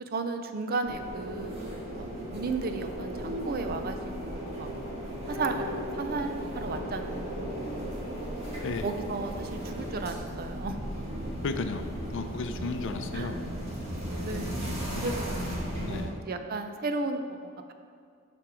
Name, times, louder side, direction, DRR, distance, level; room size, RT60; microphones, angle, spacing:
voice 1, 0.1-1.6 1.9-2.1 2.3-4.7 5.3-7.3 8.8-10.8 13.1-13.3 14.2-14.6 15.0-15.3 15.8-17.7, right 3 dB, 45° right, 7 dB, 0.5 m, -34 dB
sound 1, 0.8-16.0, equal, 30° right, 1.6 m, -36 dB
sound 2, 5.3-6.9 7.2-7.3, left 7 dB, 10° right, 0.9 m, -42 dB
voice 2, 11.4-13.4 15.8-16.2, left 3 dB, 60° left, 8 dB, 0.5 m, -34 dB
7.3 x 5.2 x 4.9 m, 2.3 s
head